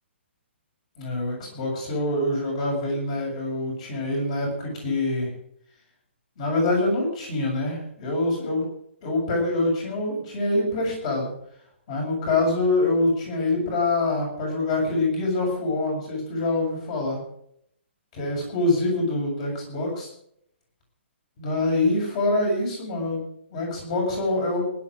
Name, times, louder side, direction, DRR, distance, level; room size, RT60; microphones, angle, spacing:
voice 1, 1.0-5.3 6.4-8.7 9.0-11.3 11.9-17.2 18.1-20.1 21.4-24.7, left 2 dB, 30° left, 0 dB, 7.2 m, -25 dB
19.5 x 10.5 x 5.0 m, 0.69 s
hypercardioid pair, 175°, 7 cm